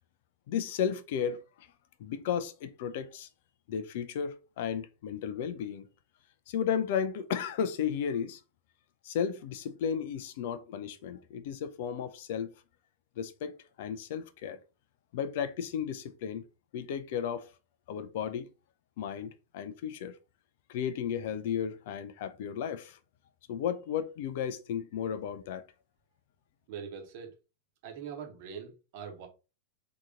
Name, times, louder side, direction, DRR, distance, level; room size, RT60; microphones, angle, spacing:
voice 1, 0.5-1.7 2.0-3.3 3.7-5.9 6.5-8.4 9.0-12.5 13.2-14.6 15.1-16.4 16.7-17.5 17.9-18.5 19.0-20.2 20.7-23.0 23.5-25.6, left 8 dB, 50° left, 0.5 m, -34 dB
voice 2, 26.7-27.3 27.8-29.3, right 7 dB, 50° right, 1.1 m, -42 dB
3.6 x 2.9 x 3.7 m
figure-of-eight pair, 90°, 0 cm